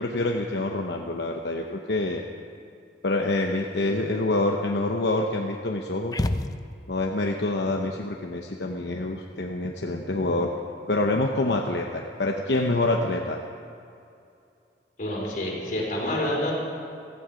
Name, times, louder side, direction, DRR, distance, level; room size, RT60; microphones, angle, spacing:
voice 1, 0.0-2.2 3.0-6.1 6.9-10.5 10.9-13.4, left 2 dB, 75° left, 2 dB, 0.9 m, -26 dB
sound 1, 6.1-7.1, left 1 dB, 20° left, 0.5 m, -29 dB
voice 2, 15.0-16.5, left 1 dB, 50° left, -3 dB, 4.4 m, -28 dB
16.0 x 15.0 x 5.1 m, 2.6 s
head